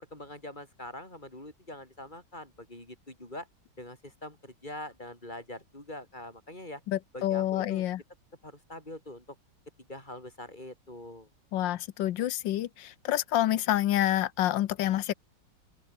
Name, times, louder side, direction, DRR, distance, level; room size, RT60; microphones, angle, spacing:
voice 1, 0.1-3.5 3.8-6.8 7.1-7.8 8.4-9.4 9.9-11.3, left 1 dB, 25° left, 6.5 m, -44 dB
voice 2, 6.9-8.0 11.5-15.1, left 13 dB, 80° left, 1.5 m, -28 dB
open air
omnidirectional pair, 2.0 m